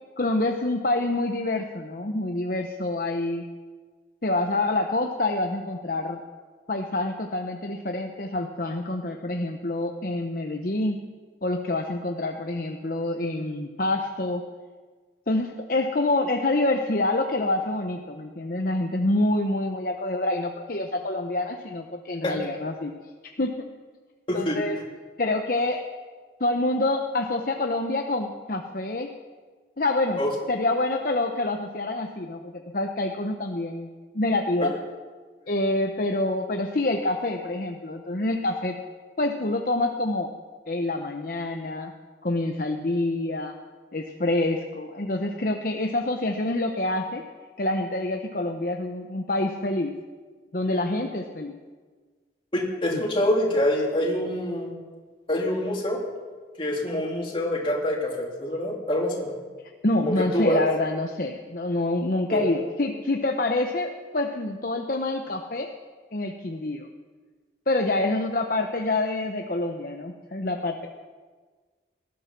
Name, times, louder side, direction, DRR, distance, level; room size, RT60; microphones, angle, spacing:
voice 1, 0.2-3.5 4.2-6.2 6.7-11.0 11.4-14.4 15.3-23.0 23.4-23.7 24.3-24.8 25.2-25.8 26.4-29.1 29.8-30.2 30.5-34.7 35.5-38.8 39.2-40.3 40.7-41.9 42.2-43.5 43.9-47.2 47.6-50.0 50.5-51.6 52.9-53.0 59.8-65.7 66.1-66.9 67.7-70.9, left 2 dB, 50° left, 3 dB, 0.9 m, -27 dB
voice 2, 24.3-24.6 30.2-30.3 35.4-35.5 52.5-54.7 55.3-56.0 56.6-59.4 60.2-60.7 62.3-62.6, left 1 dB, 30° left, -2 dB, 3.3 m, -25 dB
19.5 x 12.5 x 5.9 m, 1.5 s
head